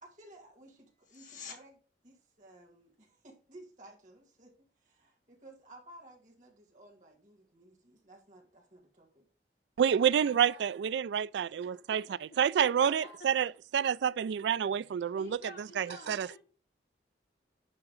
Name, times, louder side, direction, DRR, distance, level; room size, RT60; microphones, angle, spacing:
voice 1, 0.0-9.2 10.0-10.6 11.3-12.2 12.6-13.2 16.2-16.3, right 1 dB, 45° right, 2.3 m, -55 dB
sound 1, 1.0-1.6 13.0-13.1, left 7 dB, 45° left, 1.7 m, -47 dB
voice 2, 9.8-12.0 12.4-16.4, right 8 dB, 80° right, 0.3 m, -28 dB
voice 3, 12.3-13.1 15.2-16.4, equal, 65° left, 4.6 m, -50 dB
10.5 x 3.8 x 6.4 m
head